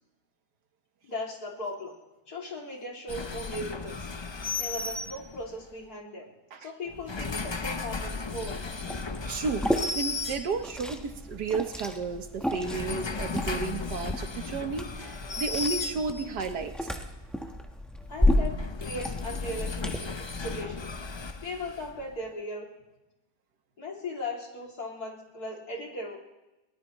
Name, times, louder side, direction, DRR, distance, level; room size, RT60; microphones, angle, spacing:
voice 1, 1.0-1.9 2.3-4.1 4.6-6.3 6.6-8.8 18.1-20.0 20.4-20.9 21.4-22.7 23.8-26.2, left 1 dB, 70° left, -1 dB, 3.4 m, -38 dB
sound 1, 3.1-5.6 6.9-10.9 12.4-16.5 18.0-22.1, left 4 dB, 40° left, 0.3 m, -35 dB
Liquid, 8.9-20.0, left 1 dB, ahead, 1.1 m, -32 dB
voice 2, 9.3-9.7 10.0-16.9, right 4 dB, 85° right, 7 dB, 1.8 m, -33 dB
22.5 x 18.5 x 3.2 m, 1.0 s
omnidirectional pair, 1.7 m